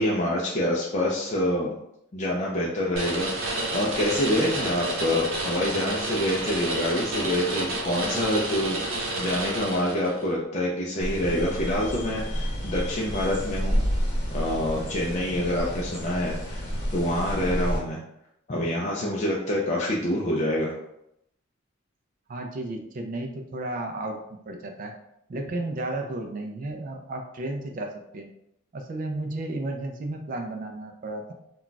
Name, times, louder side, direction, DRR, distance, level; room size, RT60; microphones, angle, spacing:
voice 1, 0.0-1.8 2.1-13.8 14.3-16.6 16.9-18.0 18.5-20.7, left 1 dB, 35° left, -3 dB, 0.4 m, -26 dB
sound 1, 2.9-10.2, right 2 dB, 75° right, 0.8 m, -30 dB
sound 2, 11.0-17.8, equal, 65° left, 1.0 m, -30 dB
voice 2, 22.3-24.9 25.3-28.3 28.7-31.3, right 2 dB, 40° right, 3 dB, 0.3 m, -33 dB
2.2 x 2.2 x 3.8 m, 0.78 s
head